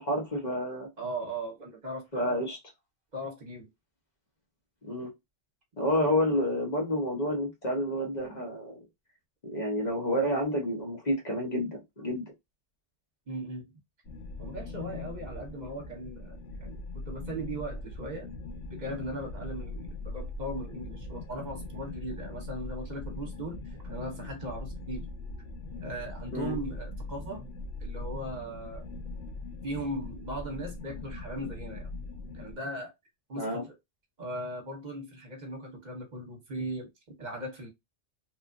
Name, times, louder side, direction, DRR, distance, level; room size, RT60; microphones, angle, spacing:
voice 1, 0.0-0.9 2.1-2.6 4.8-5.1 5.8-8.8 9.4-12.2 26.3-26.6 33.4-33.6, equal, 40° left, 0.9 m, -29 dB
voice 2, 1.0-2.4 3.1-3.7 6.0-6.1 13.3-13.7 14.4-18.3 18.7-25.1 25.8-27.4 27.8-28.8 29.6-31.9 32.3-32.9 33.3-33.7 34.2-36.9 37.2-37.7, right 1 dB, 40° right, 0.9 m, -38 dB
sound 1, 14.1-32.5, left 2 dB, 70° left, 0.9 m, -40 dB
3.0 x 2.4 x 2.5 m
omnidirectional pair, 1.2 m